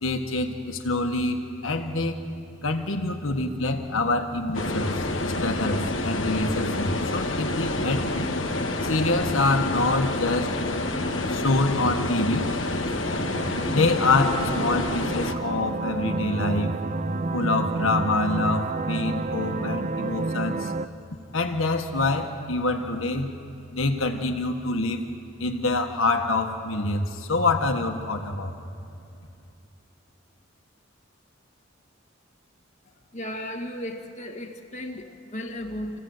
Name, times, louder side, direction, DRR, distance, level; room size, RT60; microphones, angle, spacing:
voice 1, 0.0-2.2 2.6-4.9 5.2-8.1 8.8-10.5 11.3-12.4 13.7-16.7 17.3-20.8 21.3-23.3 23.7-25.0 25.4-28.5, left 2 dB, 85° left, 1.5 m, -26 dB
sound 1, 4.5-15.3, left 2 dB, 70° left, 1.4 m, -28 dB
sound 2, 13.1-20.9, right 3 dB, 35° right, 0.5 m, -30 dB
voice 2, 33.1-36.0, left 1 dB, 35° left, 1.8 m, -35 dB
27.5 x 16.0 x 7.9 m
head